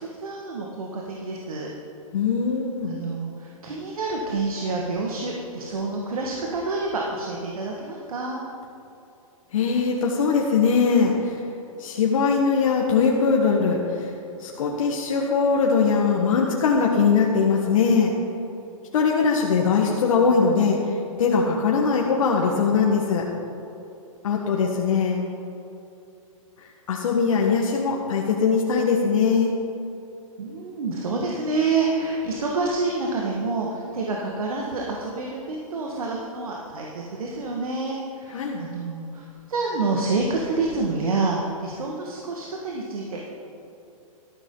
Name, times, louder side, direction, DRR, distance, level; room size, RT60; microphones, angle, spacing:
voice 1, 0.0-1.7 2.9-8.4 30.4-43.4, right 3 dB, 80° right, -1 dB, 1.7 m, -28 dB
voice 2, 2.1-2.9 9.5-11.4 11.8-14.1 14.4-18.1 18.9-23.3 24.2-25.3 26.9-29.5 38.3-38.6, left 5 dB, 65° left, -1 dB, 1.5 m, -21 dB
13.0 x 12.5 x 3.9 m, 2.8 s
hypercardioid pair, 135°, 18 cm